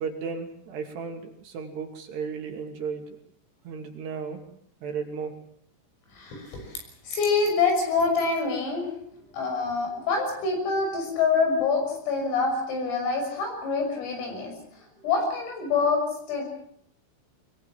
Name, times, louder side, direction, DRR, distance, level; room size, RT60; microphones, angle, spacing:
voice 1, 0.0-3.2 3.6-4.4 4.8-5.3, right 5 dB, 60° right, 3 dB, 4.4 m, -34 dB
voice 2, 6.1-6.8 7.1-8.9 9.3-14.5 15.0-16.0 16.3-16.4, left 4 dB, 90° left, 4 dB, 9.0 m, -26 dB
22.5 x 22.0 x 7.6 m, 0.67 s
omnidirectional pair, 5.8 m